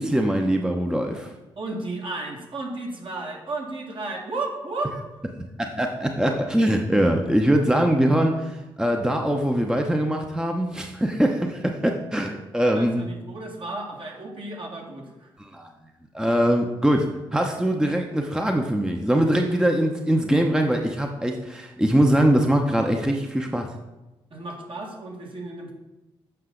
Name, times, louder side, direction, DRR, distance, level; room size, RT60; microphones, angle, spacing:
voice 1, 0.0-1.3 5.6-13.1 15.4-15.7 16.1-23.7, right 1 dB, 5° right, 3 dB, 0.8 m, -22 dB
voice 2, 1.6-5.0 11.3-11.6 12.7-15.3 24.3-25.7, right 2 dB, 55° right, -1 dB, 1.8 m, -33 dB
7.7 x 5.4 x 3.8 m, 1.1 s
supercardioid pair, 60°, 11 cm